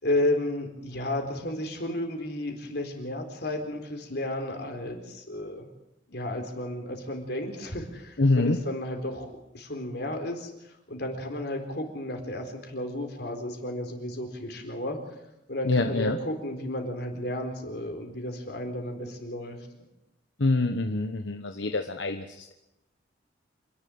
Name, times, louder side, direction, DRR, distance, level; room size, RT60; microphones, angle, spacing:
voice 1, 0.0-5.6 6.1-10.5 10.9-15.0 15.5-19.9, left 1 dB, 60° left, 4 dB, 4.2 m, -32 dB
voice 2, 8.2-8.6 15.6-16.2 20.4-22.5, left 2 dB, 85° left, 6 dB, 1.1 m, -25 dB
27.0 x 11.5 x 8.7 m, 0.93 s
head